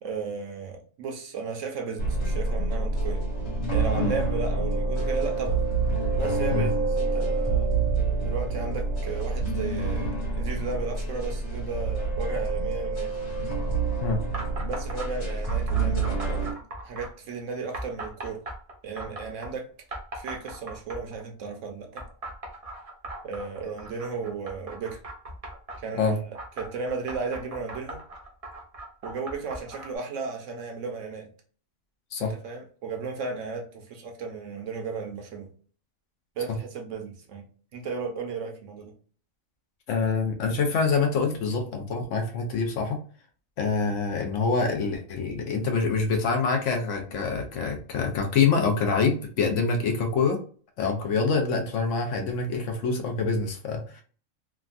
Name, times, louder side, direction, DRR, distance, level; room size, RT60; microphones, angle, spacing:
voice 1, 0.0-3.2 3.7-5.6 6.2-7.7 8.2-13.2 14.6-16.6 16.8-18.4 18.8-19.7 20.1-22.0 23.2-25.1 25.8-26.2 26.6-28.0 29.0-31.3 32.2-35.5 36.4-37.4 37.7-38.9, right 4 dB, 65° right, 0.9 m, -35 dB
sound 1, 2.0-16.5, right 3 dB, 45° left, 1.7 m, -27 dB
sound 2, 14.3-15.1 15.4-17.1 17.7-19.5 19.9-21.2 22.0-25.8 26.3-30.0, right 2 dB, 40° right, 0.6 m, -39 dB
voice 2, 39.9-43.0 43.6-50.4 50.8-54.0, left 4 dB, 65° left, 0.9 m, -26 dB
3.4 x 2.1 x 2.4 m
omnidirectional pair, 1.5 m